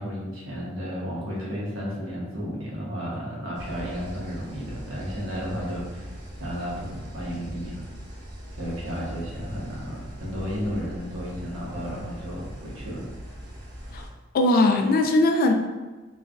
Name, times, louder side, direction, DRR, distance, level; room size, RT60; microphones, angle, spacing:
voice 1, 0.0-6.1 6.4-7.8 8.6-13.1, equal, 85° right, -5 dB, 1.0 m, -33 dB
sound 1, 3.5-14.1, equal, 55° right, 0.7 m, -40 dB
voice 2, 14.3-15.5, left 2 dB, 45° left, 3 dB, 0.3 m, -20 dB
3.2 x 2.2 x 2.4 m, 1.3 s
head